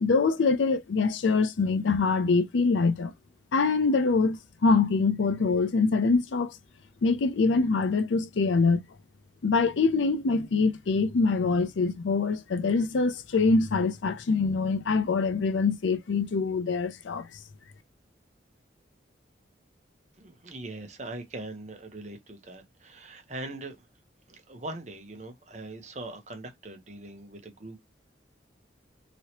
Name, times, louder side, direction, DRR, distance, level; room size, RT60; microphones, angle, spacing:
voice 1, 0.0-3.1 3.5-6.6 7.0-8.8 9.4-17.3, left 4 dB, 80° left, 0.5 m, -24 dB
voice 2, 20.2-23.9 24.3-27.8, right 2 dB, 40° right, 0.9 m, -41 dB
3.0 x 2.8 x 2.9 m
head